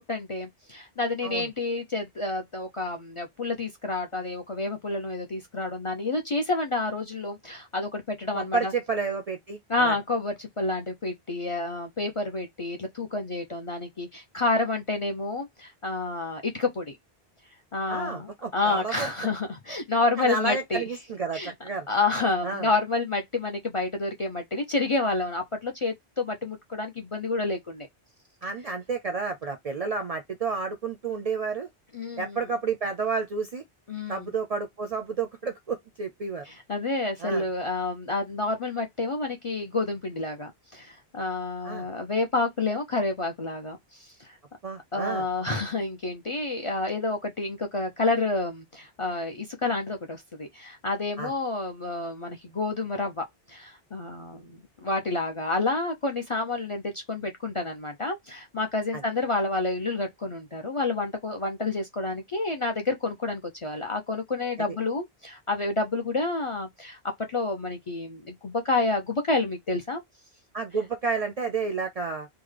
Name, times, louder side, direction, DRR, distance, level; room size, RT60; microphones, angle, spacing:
voice 1, 0.0-8.7 9.7-17.0 17.7-20.8 21.3-21.5 21.9-27.9 31.9-32.4 33.9-34.3 36.4-44.3 44.9-67.0 67.3-70.0, left 3 dB, 45° left, 0.4 m, -29 dB
voice 2, 8.3-9.9 17.9-19.1 20.2-21.9 22.4-22.7 28.4-31.7 32.2-33.6 34.1-36.4 37.2-37.5 41.6-41.9 44.6-45.2 51.2-51.3 70.5-72.3, right 4 dB, 55° right, 0.4 m, -30 dB
3.6 x 2.1 x 3.2 m
omnidirectional pair, 1.1 m